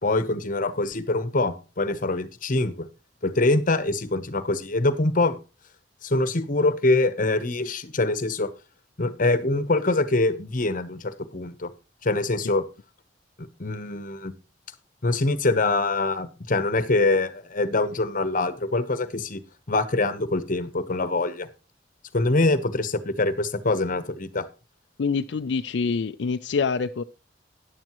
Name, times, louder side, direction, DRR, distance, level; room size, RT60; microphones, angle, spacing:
voice 1, 0.0-2.9 3.2-5.4 6.0-8.5 9.0-11.7 12.0-12.6 13.4-14.3 15.0-19.4 19.7-21.5 22.1-24.4, left 2 dB, 50° left, 1.0 m, -24 dB
voice 2, 25.0-27.0, left 5 dB, 70° left, 0.4 m, -26 dB
13.5 x 10.0 x 3.0 m
head